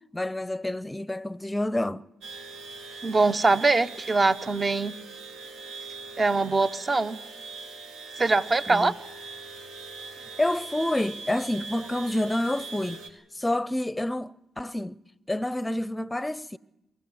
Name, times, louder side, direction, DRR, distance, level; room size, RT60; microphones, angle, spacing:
voice 1, 0.1-2.0 8.7-8.9 10.4-13.0 13.3-15.0 15.3-16.6, left 1 dB, 15° left, 0.7 m, -28 dB
sound 1, 2.2-13.1, right 3 dB, 80° right, 1.9 m, -41 dB
voice 2, 3.0-4.9 6.2-7.2 8.2-8.9, right 3 dB, 35° right, 0.9 m, -23 dB
23.5 x 13.5 x 9.4 m
supercardioid pair, 55°, 0 cm